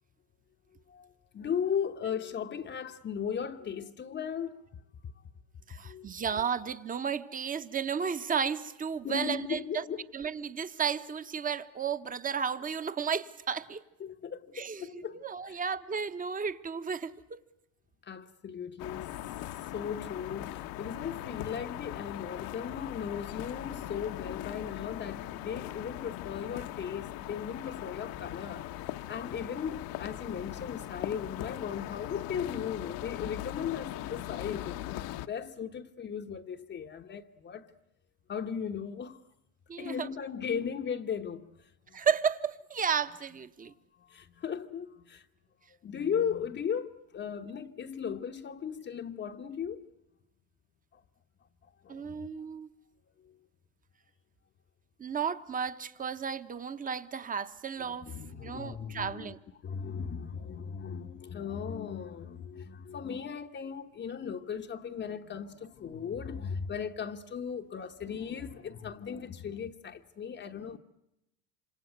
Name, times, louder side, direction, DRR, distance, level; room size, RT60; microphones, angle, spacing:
voice 1, 1.3-4.6 5.8-6.1 6.3-6.4 9.0-10.1 14.0-15.6 18.0-19.1 19.7-37.7 38.3-39.2 39.8-41.5 41.9-42.1 43.6-43.7 44.0-45.3 45.8-49.9 50.9-51.0 51.8-52.3 53.2-53.3 57.9-59.4 59.6-70.8, left 7 dB, 25° left, 1.0 m, -37 dB
voice 2, 5.7-9.8 10.1-13.8 14.6-17.4 39.7-40.1 41.9-43.7 51.9-52.7 55.0-58.1 58.4-59.4, right 6 dB, 20° right, 1.1 m, -33 dB
sound 1, 18.8-35.3, left 14 dB, 55° left, 1.1 m, -40 dB
26.5 x 26.5 x 8.0 m
supercardioid pair, 115°, 42 cm